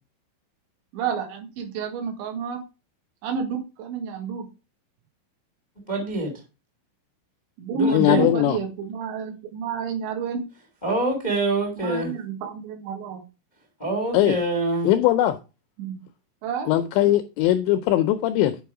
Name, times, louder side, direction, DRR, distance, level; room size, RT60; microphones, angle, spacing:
voice 1, 0.9-2.6 3.2-4.5 7.6-10.4 11.8-13.2 15.8-16.0 16.4-16.7, right 6 dB, 70° right, 4 dB, 3.8 m, -30 dB
voice 2, 5.9-6.3 7.7-8.3 10.8-12.1 13.8-14.9, right 2 dB, 40° left, 2 dB, 0.6 m, -25 dB
voice 3, 7.9-8.6 14.1-14.4 14.8-15.4 16.7-18.6, left 14 dB, 85° left, 8 dB, 2.6 m, -20 dB
10.0 x 5.4 x 4.7 m, 0.30 s
omnidirectional pair, 5.7 m